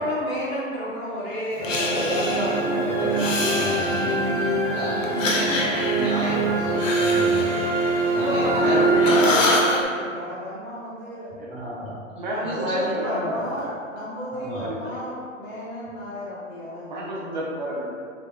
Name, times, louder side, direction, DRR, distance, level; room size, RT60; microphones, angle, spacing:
voice 1, 0.0-1.9 8.1-11.2 12.3-16.9, equal, 25° left, -8 dB, 0.7 m, -30 dB
Breathing, 1.6-2.7 3.1-4.4 5.0-8.6 8.9-9.8, left 3 dB, 75° left, 0.6 m, -27 dB
sound 1, 1.6-9.9, right 3 dB, 25° right, 1.3 m, -24 dB
voice 2, 1.7-7.7 8.1-8.8 11.5-12.0 12.4-13.5 14.3-14.7, equal, ahead, -17 dB, 1.0 m, -31 dB
voice 3, 8.5-9.5 12.1-13.4 13.6-13.8 14.6-15.0 16.9-17.9, right 1 dB, 40° right, -4 dB, 0.4 m, -29 dB
2.2 x 2.0 x 2.9 m, 2.1 s
hypercardioid pair, 125°, 39 cm